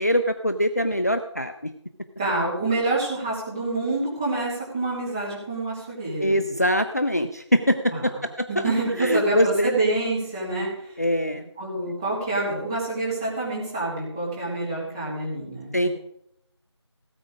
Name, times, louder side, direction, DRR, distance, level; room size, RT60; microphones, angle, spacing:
voice 1, 0.0-1.7 6.2-8.1 8.4-8.6 9.0-9.7 11.0-11.5 15.7-15.9, equal, 35° left, 7 dB, 0.6 m, -23 dB
voice 2, 2.2-6.4 7.9-8.0 8.5-10.7 11.6-15.9, right 2 dB, 10° right, -8 dB, 2.4 m, -27 dB
17.5 x 8.5 x 5.0 m, 0.75 s
figure-of-eight pair, 170°, 15 cm